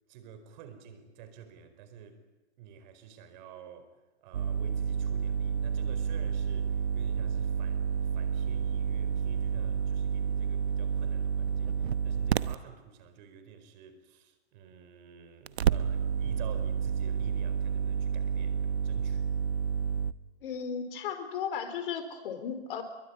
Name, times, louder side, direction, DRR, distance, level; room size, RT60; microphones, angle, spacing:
voice 1, 0.1-2.2 2.6-19.3, right 7 dB, 40° right, 4.5 m, -50 dB
sound 1, 4.3-12.6 15.5-20.1, right 7 dB, 65° right, 1.1 m, -30 dB
voice 2, 20.4-22.8, left 7 dB, 50° left, 4.7 m, -35 dB
27.0 x 23.0 x 9.6 m
hypercardioid pair, 135°, 34 cm